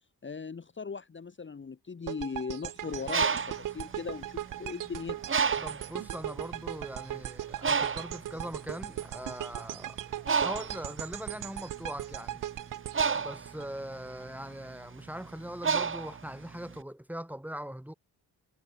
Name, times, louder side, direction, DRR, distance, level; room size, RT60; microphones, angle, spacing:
voice 1, 0.2-5.2, left 5 dB, 30° left, 1.6 m, -38 dB
sound 1, 2.1-14.2, right 12 dB, 55° right, 0.6 m, -39 dB
Bird, 2.9-4.7 5.3-6.0 6.6-6.8 7.0-16.8, right 5 dB, 30° right, 1.4 m, -31 dB
voice 2, 5.6-10.0 10.4-12.4 13.1-17.9, equal, 5° right, 2.6 m, -41 dB
cardioid pair, 100°, 40 cm